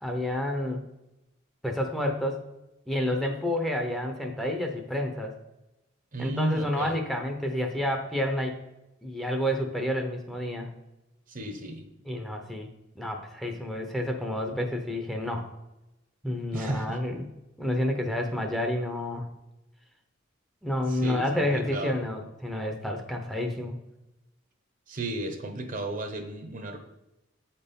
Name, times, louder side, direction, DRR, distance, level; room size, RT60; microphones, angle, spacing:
voice 1, 0.0-0.8 1.6-2.4 2.9-5.3 6.2-8.6 9.0-10.7 12.1-12.7 13.0-15.5 16.2-17.3 17.6-19.3 20.6-23.8, left 1 dB, ahead, 2 dB, 0.8 m, -29 dB
voice 2, 6.1-7.0 11.3-11.8 16.5-17.0 20.9-21.3 21.5-21.9 24.9-26.8, right 2 dB, 45° right, 6 dB, 0.9 m, -33 dB
8.1 x 4.4 x 5.2 m, 0.96 s
head